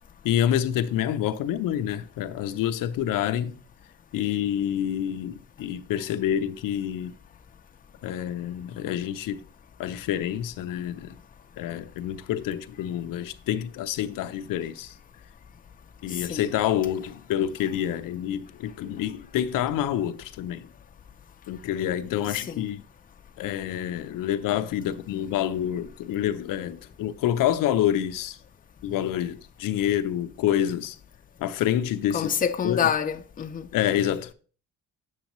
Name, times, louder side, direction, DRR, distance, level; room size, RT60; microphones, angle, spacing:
voice 1, 0.2-3.6 4.1-7.1 8.0-9.4 9.8-11.2 11.6-15.0 16.0-20.7 21.5-22.8 23.4-28.4 28.8-31.0 31.4-32.3 32.6-32.9 33.7-34.3, left 11 dB, 75° left, 0.6 m, -27 dB
voice 2, 22.3-22.7 32.1-33.7, left 8 dB, 25° left, 0.5 m, -27 dB
8.0 x 6.2 x 3.0 m
cardioid pair, 85°, 33 cm